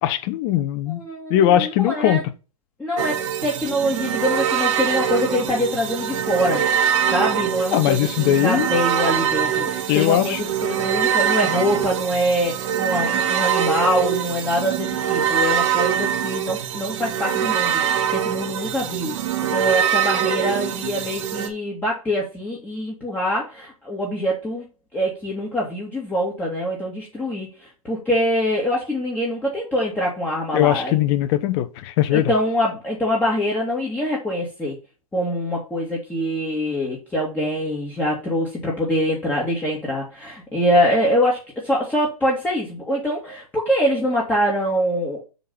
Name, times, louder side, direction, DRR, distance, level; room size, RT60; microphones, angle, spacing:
voice 1, 0.0-1.0 1.3-2.2 7.7-8.7 9.9-10.4 30.5-32.3, left 12 dB, 40° left, 0.9 m, -20 dB
voice 2, 0.9-2.2 2.8-6.6 7.1-19.1 19.5-24.6 24.9-31.0 32.1-34.8 35.1-45.2, equal, 10° left, 2.2 m, -24 dB
sound 1, 3.0-21.5, right 9 dB, 55° right, 1.7 m, -23 dB
7.2 x 3.9 x 5.5 m
hypercardioid pair, 125°, 19 cm